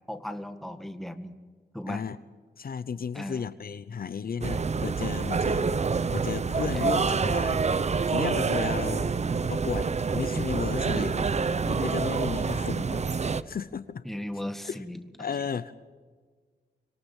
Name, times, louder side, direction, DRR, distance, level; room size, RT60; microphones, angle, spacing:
voice 1, 0.1-1.4 1.7-2.0 3.1-3.5 6.7-7.1 14.0-15.0, left 1 dB, ahead, 8 dB, 1.8 m, -36 dB
voice 2, 1.9-2.2 2.6-7.6 8.1-9.1 9.5-11.3 11.6-13.0 13.5-14.0 14.6-14.8 15.2-15.8, left 6 dB, 60° left, 15 dB, 0.8 m, -34 dB
sound 1, 4.4-13.4, right 5 dB, 40° right, 0.8 m, -27 dB
26.0 x 22.5 x 7.3 m, 1.5 s
wide cardioid pair, 135°, 17 cm